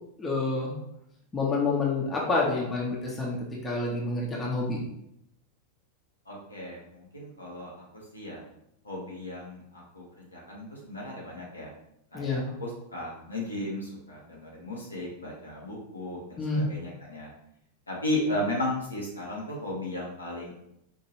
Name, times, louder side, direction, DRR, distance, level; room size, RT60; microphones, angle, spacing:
voice 1, 0.2-0.7 1.3-3.4 3.6-4.8 12.1-12.4 16.4-16.6, left 3 dB, 20° left, -3 dB, 0.9 m, -28 dB
voice 2, 6.3-7.8 8.1-8.4 8.8-11.7 12.1-17.3 17.9-20.5, left 1 dB, 80° left, -4 dB, 1.2 m, -35 dB
4.4 x 2.8 x 2.9 m, 0.77 s
figure-of-eight pair, 90°, 0 cm